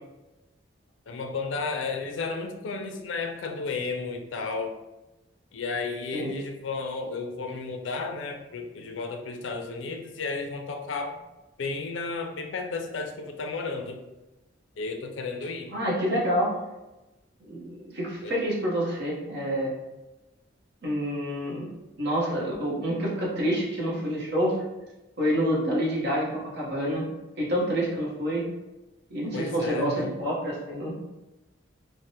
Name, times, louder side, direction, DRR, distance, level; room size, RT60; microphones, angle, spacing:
voice 1, 1.1-4.7 5.5-11.2 11.6-14.0 14.8-15.7 18.2-18.3 29.3-30.1, left 4 dB, 80° left, 4 dB, 0.4 m, -33 dB
voice 2, 15.7-16.5 17.4-19.7 20.8-21.7 22.0-24.6 25.2-27.0 27.4-28.4 29.1-30.9, equal, 60° right, -4 dB, 0.9 m, -27 dB
3.3 x 2.1 x 2.7 m, 1.0 s
head